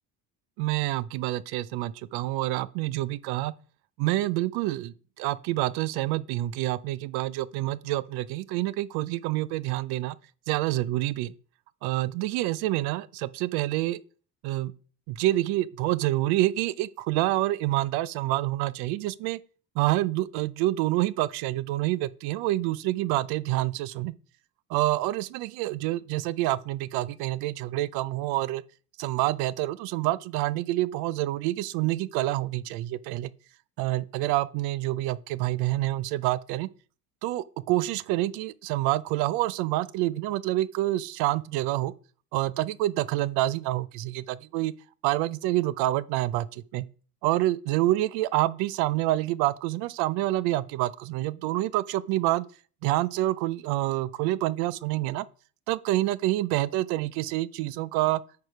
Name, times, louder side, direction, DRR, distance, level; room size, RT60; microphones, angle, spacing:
voice 1, 0.6-3.5 4.0-10.2 10.5-11.3 11.8-14.0 14.4-14.7 15.1-19.4 19.8-24.1 24.7-28.6 29.0-33.3 33.8-36.7 37.2-41.9 42.3-44.7 45.0-46.9 47.2-52.5 52.8-55.3 55.7-58.2, right 16 dB, 80° right, 0.6 m, -27 dB
9.2 x 4.8 x 4.9 m
cardioid pair, 170°, 38 cm